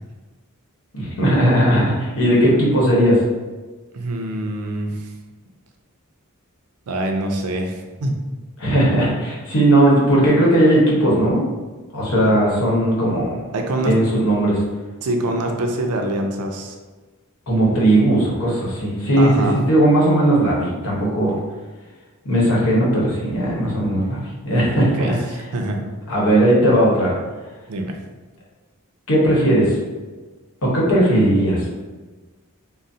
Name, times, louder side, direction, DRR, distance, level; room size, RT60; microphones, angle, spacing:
voice 1, 0.9-3.2 8.6-11.4 11.9-13.3 13.8-14.6 17.5-21.3 22.2-25.2 26.1-27.1 29.1-29.8 30.6-31.9, right 1 dB, 70° left, -5 dB, 1.0 m, -17 dB
voice 2, 3.9-5.1 6.9-8.1 13.5-14.0 15.0-16.8 19.2-19.6 24.7-25.1 25.5-25.8 27.7-28.0, right 1 dB, 80° right, 3 dB, 0.5 m, -24 dB
3.9 x 2.0 x 2.6 m, 1.3 s
head